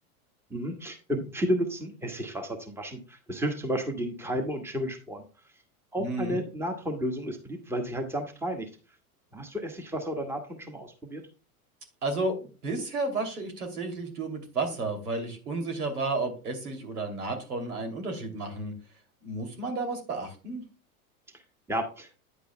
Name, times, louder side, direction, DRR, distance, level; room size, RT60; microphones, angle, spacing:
voice 1, 0.5-5.2 5.9-8.7 9.3-11.2 21.7-22.1, equal, 5° right, 4 dB, 1.6 m, -32 dB
voice 2, 6.0-6.4 12.0-18.7 19.2-20.6, right 3 dB, 80° right, 6 dB, 2.9 m, -32 dB
9.8 x 8.4 x 2.2 m, 0.33 s
hypercardioid pair, 95°, 45 cm